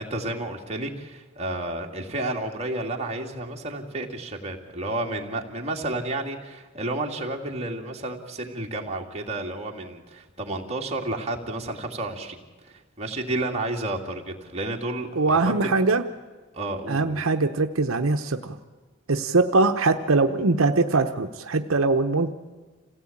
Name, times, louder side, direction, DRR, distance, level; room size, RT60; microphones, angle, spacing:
voice 1, 0.0-15.5 16.5-17.2, right 2 dB, 30° right, 1 dB, 2.5 m, -31 dB
voice 2, 15.1-16.0 16.9-18.6 19.1-22.3, right 3 dB, 80° right, 6 dB, 0.9 m, -22 dB
27.5 x 17.0 x 8.7 m, 1.3 s
head